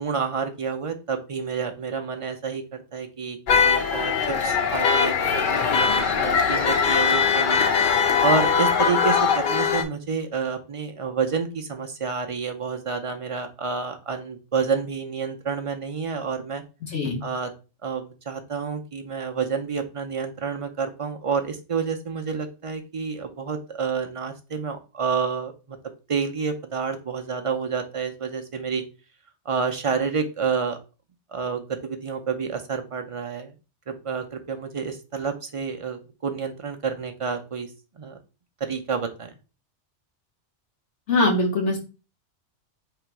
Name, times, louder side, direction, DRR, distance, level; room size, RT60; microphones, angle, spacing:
voice 1, 0.0-4.1 4.4-5.9 6.1-7.6 8.2-16.6 17.2-17.5 17.8-25.5 26.1-28.8 29.5-30.8 31.3-33.5 33.9-37.7 38.0-38.2 38.6-39.3, right 5 dB, 45° right, 5 dB, 0.4 m, -29 dB
sound 1, 3.5-9.8, left 6 dB, 55° left, 0.6 m, -21 dB
voice 2, 16.8-17.2 41.1-41.8, left 2 dB, 75° left, 1 dB, 1.5 m, -22 dB
3.9 x 2.9 x 4.5 m, 0.32 s
omnidirectional pair, 1.2 m